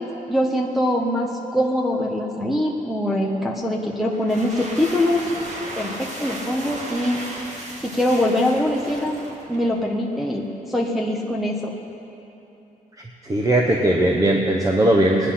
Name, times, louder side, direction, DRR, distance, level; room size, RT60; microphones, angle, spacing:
voice 1, 0.0-5.3 5.7-7.2 7.8-9.2 9.5-11.7, left 1 dB, ahead, -2 dB, 1.0 m, -23 dB
sound 1, 4.1-9.8, right 1 dB, 50° right, 2.1 m, -35 dB
voice 2, 13.3-15.3, right 1 dB, 25° right, 0 dB, 1.0 m, -18 dB
18.5 x 10.0 x 5.8 m, 2.9 s
cardioid pair, 125°, 15 cm